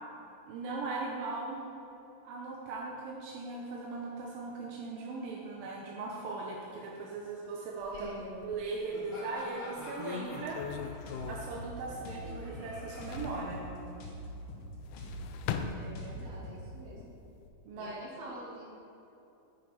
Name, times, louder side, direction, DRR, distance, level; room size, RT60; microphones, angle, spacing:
voice 1, 0.5-1.6 2.2-8.1 8.4-10.9 11.3-13.6 17.7-18.0, right 3 dB, 85° right, -3 dB, 2.7 m, -39 dB
sound 1, 7.8-8.8 9.3-9.4 9.8-12.4 12.7-13.5 14.7-16.4 16.9-17.5, left 7 dB, 80° left, 1.8 m, -41 dB
voice 2, 7.9-8.4 15.7-17.1 17.7-18.6, right 1 dB, 55° right, -6 dB, 3.4 m, -46 dB
Laughter, 8.9-14.3, equal, 40° left, 2.5 m, -49 dB
sound 2, 10.3-16.6, right 1 dB, 60° left, 1.8 m, -44 dB
9.7 x 8.4 x 4.5 m, 2.9 s
omnidirectional pair, 3.9 m